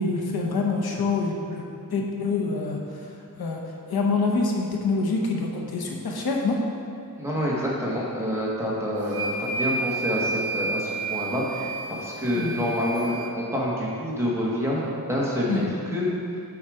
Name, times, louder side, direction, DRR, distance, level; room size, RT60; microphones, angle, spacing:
voice 1, 0.0-1.6 1.9-2.8 3.4-3.6 3.9-6.6 12.4-12.6 15.5-15.8, left 3 dB, 85° left, 0 dB, 1.0 m, -26 dB
voice 2, 7.2-15.6 15.9-16.1, equal, 5° right, -6 dB, 1.5 m, -27 dB
sound 1, 9.0-13.3, right 3 dB, 90° right, 0.8 m, -31 dB
7.2 x 5.7 x 4.9 m, 2.5 s
wide cardioid pair, 150°, 36 cm